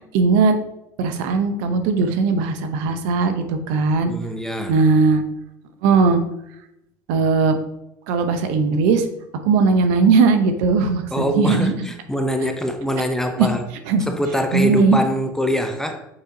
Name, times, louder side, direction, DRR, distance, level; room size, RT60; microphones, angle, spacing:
voice 1, 0.1-0.6 1.0-4.1 4.7-5.2 5.8-6.2 7.1-7.6 8.1-9.1 9.4-11.9 13.4-13.5 13.8-14.1 14.5-15.0, right 4 dB, 75° right, 0.8 m, -18 dB
voice 2, 4.1-4.8 11.1-13.6 14.1-16.1, equal, 5° left, 0.7 m, -23 dB
6.8 x 5.0 x 2.8 m
supercardioid pair, 100°, 10 cm